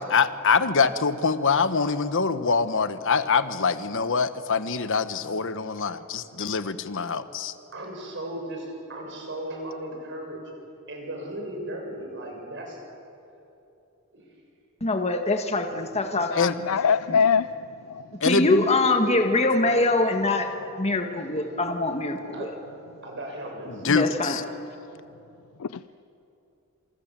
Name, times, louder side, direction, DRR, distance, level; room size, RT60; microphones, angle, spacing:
voice 1, 0.0-7.5 16.4-16.6 18.2-18.7 23.7-24.4, left 5 dB, 65° left, 1.2 m, -24 dB
voice 2, 7.7-8.6 8.9-10.4 10.9-12.8 14.1-14.3 22.3-22.5 23.0-23.8, right 1 dB, 60° right, 7.0 m, -36 dB
voice 3, 14.8-16.5 18.2-20.5 20.8-22.5 23.8-24.4, left 2 dB, 30° left, 1.6 m, -23 dB
voice 4, 16.3-18.1 20.6-20.7 25.6-25.8, left 6 dB, 80° left, 0.5 m, -24 dB
27.5 x 27.5 x 7.6 m
head